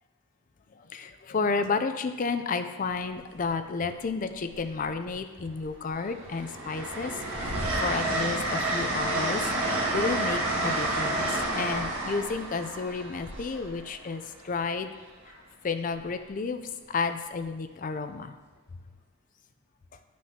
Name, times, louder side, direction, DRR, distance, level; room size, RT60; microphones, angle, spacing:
voice 1, 0.7-9.5 9.9-14.9 15.6-18.3, left 4 dB, 40° left, 9 dB, 0.4 m, -31 dB
Train, 2.8-3.1 4.4-5.2 5.6-14.3 15.9-16.2, right 2 dB, 70° right, 1.5 m, -30 dB
9.7 x 6.2 x 2.9 m, 1.2 s
head